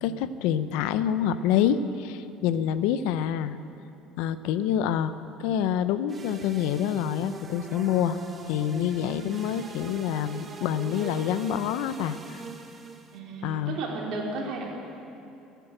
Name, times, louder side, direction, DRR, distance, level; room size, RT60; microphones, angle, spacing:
voice 1, 0.0-3.6 4.2-5.1 5.4-12.4 13.4-13.7, left 9 dB, 75° left, 13 dB, 0.6 m, -27 dB
sound 1, 6.1-13.2, right 4 dB, 20° right, 0.9 m, -41 dB
voice 2, 13.1-14.7, right 3 dB, 55° right, -2 dB, 3.0 m, -33 dB
15.5 x 9.3 x 7.9 m, 2.7 s
cardioid pair, 165°, 0 cm